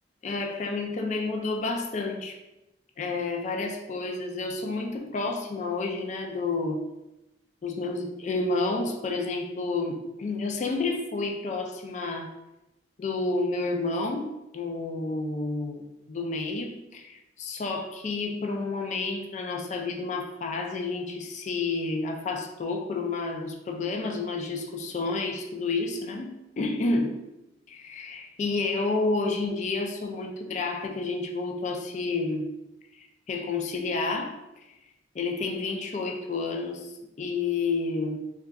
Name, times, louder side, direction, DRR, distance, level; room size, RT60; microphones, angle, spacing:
voice 1, 0.2-2.4 3.0-6.8 7.6-12.3 13.0-27.2 27.7-32.5 33.0-34.4 35.1-36.9 37.2-38.2, left 3 dB, 40° left, 2 dB, 0.3 m, -30 dB
3.8 x 2.2 x 2.3 m, 0.95 s
head